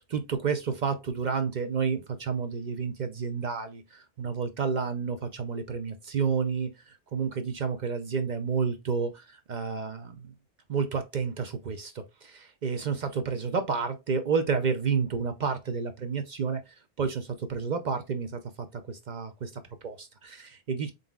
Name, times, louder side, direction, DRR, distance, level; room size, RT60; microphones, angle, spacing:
voice 1, 0.0-10.3 10.7-20.9, right 5 dB, 50° right, 0.6 m, -30 dB
4.1 x 3.9 x 2.3 m
omnidirectional pair, 1.2 m